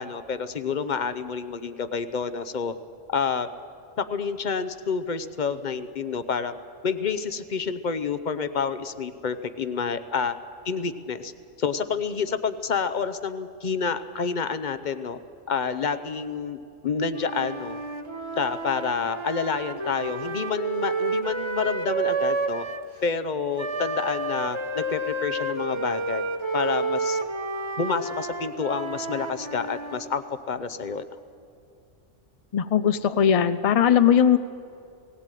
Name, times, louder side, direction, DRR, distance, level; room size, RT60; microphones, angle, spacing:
voice 1, 0.0-2.7 3.1-3.5 4.0-6.6 6.8-10.3 10.6-11.3 11.6-15.2 15.5-16.6 16.8-17.8 18.4-22.6 23.0-26.2 26.5-27.2 27.8-31.1, left 5 dB, 45° left, 11 dB, 0.8 m, -28 dB
Wind instrument woodwind instrument, 17.1-22.9 23.6-30.0, right 3 dB, 25° right, 1.0 m, -30 dB
voice 2, 32.5-34.4, left 8 dB, 60° left, 12 dB, 0.3 m, -19 dB
18.0 x 17.0 x 9.1 m, 2.4 s
omnidirectional pair, 1.3 m